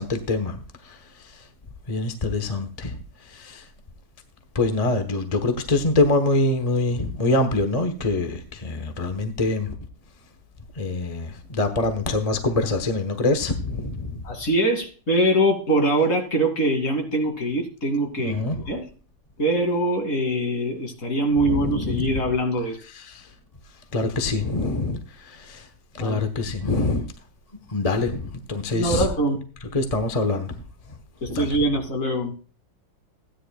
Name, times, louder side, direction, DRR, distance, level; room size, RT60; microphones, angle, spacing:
voice 1, 0.0-1.5 1.9-3.7 4.5-9.7 10.7-14.2 18.2-18.6 21.4-22.2 22.9-23.3 23.9-25.7 25.9-27.1 27.7-29.1 29.6-30.6 31.3-31.5, left 2 dB, 25° left, 0.8 m, -25 dB
voice 2, 14.2-18.4 18.7-18.8 19.4-22.8 26.0-26.3 28.7-29.4 31.2-32.3, right 1 dB, 45° left, 2.8 m, -23 dB
16.0 x 10.0 x 2.3 m
omnidirectional pair, 2.1 m